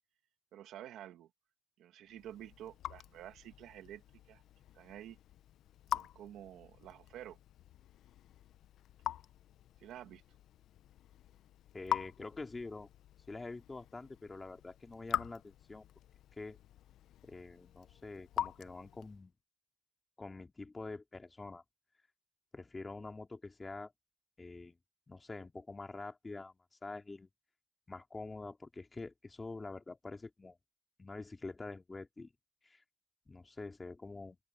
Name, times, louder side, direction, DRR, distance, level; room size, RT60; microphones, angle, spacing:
voice 1, 0.5-1.3 1.8-4.0 4.3-4.4 4.7-5.2 5.9-7.4 9.8-10.2, right 12 dB, 85° right, 2.1 m, -50 dB
Raindrop / Drip, 2.1-19.3, left 11 dB, 80° left, 0.7 m, -44 dB
voice 2, 11.7-12.9 13.3-15.9 16.4-16.6 17.2-19.3 20.2-21.6 22.5-23.9 24.4-24.8 25.1-27.3 27.9-30.6 31.0-32.3 32.6-32.8 33.3-34.4, left 3 dB, 25° left, 2.6 m, -46 dB
open air
cardioid pair, 90°, 0 cm